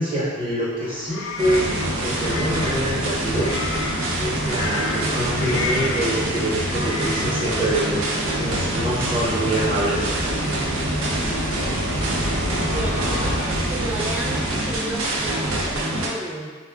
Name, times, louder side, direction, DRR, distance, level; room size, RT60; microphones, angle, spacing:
voice 1, 0.0-1.7 2.0-3.5 4.2-10.6, right 1 dB, 25° right, -8 dB, 1.0 m, -25 dB
sound 1, 0.8-7.4, left 3 dB, 70° left, 0.4 m, -33 dB
sound 2, 1.4-16.1, right 1 dB, 70° right, 0.6 m, -25 dB
sound 3, 5.2-14.4, left 1 dB, 90° right, 1.0 m, -34 dB
voice 2, 12.7-16.6, right 1 dB, 10° right, -2 dB, 0.3 m, -33 dB
3.5 x 2.3 x 3.6 m, 1.5 s
head